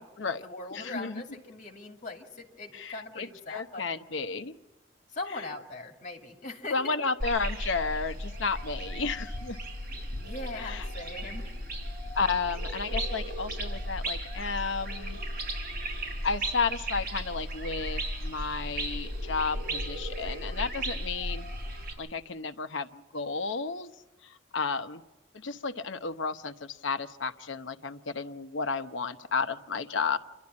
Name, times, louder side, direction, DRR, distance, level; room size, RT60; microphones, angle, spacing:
voice 1, 0.0-3.9 5.1-7.0 10.2-11.5, left 2 dB, 40° left, 2 dB, 2.5 m, -40 dB
voice 2, 0.7-1.2 2.7-4.5 6.7-9.6 10.6-10.8 12.1-15.2 16.2-21.5 22.0-23.9 24.2-25.0 25.3-30.2, left 4 dB, 75° left, 9 dB, 0.9 m, -32 dB
sound 1, 7.2-21.9, right 1 dB, 50° right, 5.7 m, -35 dB
28.5 x 12.0 x 9.7 m, 1.1 s
head